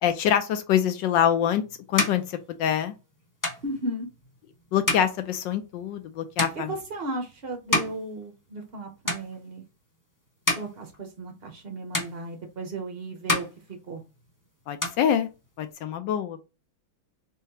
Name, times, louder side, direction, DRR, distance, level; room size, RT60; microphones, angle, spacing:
voice 1, 0.0-1.6 1.9-2.9 4.7-6.7 14.7-15.3 15.6-16.4, left 9 dB, 75° left, 1.1 m, -25 dB
sound 1, 1.1-8.8 9.0-9.8 10.2-11.7 11.9-12.8 13.1-14.4 14.6-15.7, left 2 dB, 25° left, 0.4 m, -32 dB
voice 2, 3.6-4.1 6.6-9.6 10.6-14.0, right 2 dB, 65° right, 0.5 m, -35 dB
4.1 x 3.7 x 2.8 m
omnidirectional pair, 2.3 m